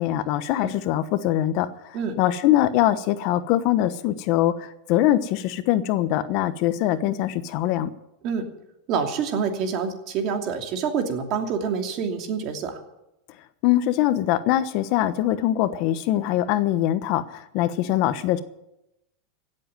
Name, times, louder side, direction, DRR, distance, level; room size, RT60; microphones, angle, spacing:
voice 1, 0.0-1.7 2.2-7.9 13.6-18.4, left 13 dB, 55° left, 13 dB, 1.0 m, -22 dB
voice 2, 8.9-12.8, right 6 dB, 50° right, 4 dB, 2.8 m, -27 dB
17.0 x 7.8 x 9.1 m, 0.87 s
supercardioid pair, 120°, 0 cm